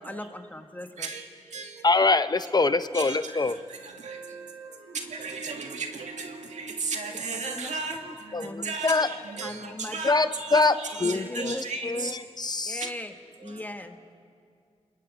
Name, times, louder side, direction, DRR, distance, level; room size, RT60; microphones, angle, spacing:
voice 1, 0.0-1.1 7.3-8.1 8.4-9.1 9.4-10.8 11.0-12.2 12.6-13.1 13.4-14.0, left 1 dB, 15° left, 6 dB, 1.5 m, -38 dB
voice 2, 1.0-1.9 2.9-12.2 12.8-12.9 13.4-13.6, right 4 dB, 90° right, 3 dB, 2.1 m, -36 dB
voice 3, 1.8-3.6 8.3-9.1 10.0-10.7 11.0-11.6 11.8-12.8, left 3 dB, 35° left, 12 dB, 0.7 m, -24 dB
28.0 x 21.5 x 5.1 m, 2.2 s
cardioid pair, 70°, 12 cm